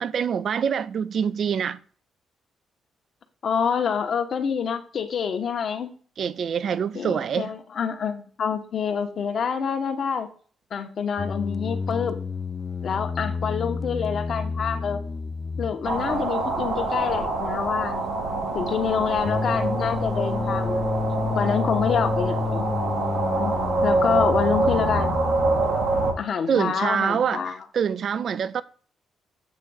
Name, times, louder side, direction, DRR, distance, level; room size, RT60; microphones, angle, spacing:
voice 1, 0.0-1.8 6.2-7.5 26.5-28.6, right 7 dB, 55° right, 0.4 m, -25 dB
voice 2, 3.4-5.9 6.9-10.3 10.7-12.2 12.8-15.0 15.6-18.0 18.5-20.9 21.3-22.6 23.3-25.2 26.2-27.6, left 7 dB, 55° left, 1.0 m, -27 dB
Dragon wakes up, 11.2-25.7, left 4 dB, 30° left, 0.4 m, -30 dB
sound 1, 15.8-26.1, right 3 dB, 80° right, 1.7 m, -25 dB
8.3 x 3.2 x 6.2 m
cardioid pair, 115°, 0 cm